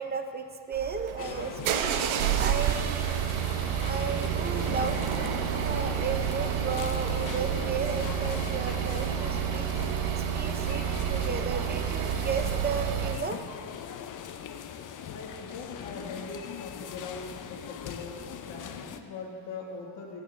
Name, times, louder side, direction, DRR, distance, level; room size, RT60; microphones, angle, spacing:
voice 1, 0.0-1.9 2.4-3.2 3.8-5.0 5.5-9.7 10.3-13.4, right 5 dB, 20° right, 6 dB, 0.6 m, -34 dB
sound 1, 0.7-13.2, right 9 dB, 80° right, 0.9 m, -29 dB
sound 2, 1.2-19.0, left 8 dB, 40° left, 0.6 m, -41 dB
voice 2, 9.9-10.6 15.1-18.2 18.5-20.2, left 4 dB, 60° left, -5 dB, 2.0 m, -41 dB
24.0 x 9.0 x 3.2 m, 2.6 s
cardioid pair, 160°, 49 cm